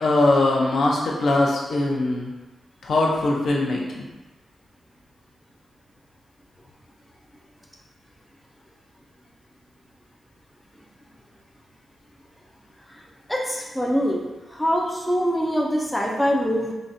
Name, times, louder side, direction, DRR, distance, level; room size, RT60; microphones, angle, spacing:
voice 1, 0.0-2.3 2.8-4.0, left 2 dB, 65° left, -2 dB, 0.6 m, -21 dB
voice 2, 13.3-14.2 14.5-16.7, equal, 5° left, -2 dB, 0.3 m, -23 dB
3.9 x 2.2 x 2.5 m, 1.1 s
wide cardioid pair, 140°, 0 cm